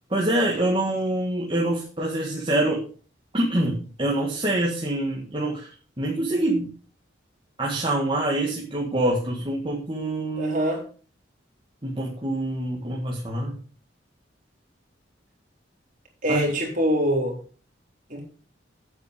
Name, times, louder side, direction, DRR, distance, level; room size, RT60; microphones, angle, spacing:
voice 1, 0.1-2.9 3.3-5.7 6.0-6.7 7.6-10.6 11.8-13.5 16.3-16.5, right 1 dB, 25° right, 1.7 m, -25 dB
voice 2, 10.4-10.8 16.2-17.4 18.1-18.2, equal, 45° right, 3.5 m, -24 dB
8.6 x 7.8 x 5.1 m
head